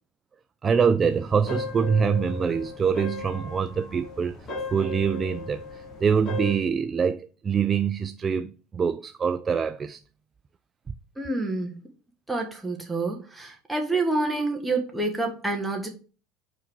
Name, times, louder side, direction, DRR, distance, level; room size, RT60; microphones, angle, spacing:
voice 1, 0.6-4.3 4.7-10.0, right 6 dB, 25° right, 0.3 m, -25 dB
sound 1, 1.1-6.5, left 3 dB, 35° left, 2.9 m, -37 dB
voice 2, 11.2-11.7 12.3-15.9, right 2 dB, 5° right, 1.5 m, -28 dB
5.1 x 4.9 x 4.5 m
supercardioid pair, 115°, 0 cm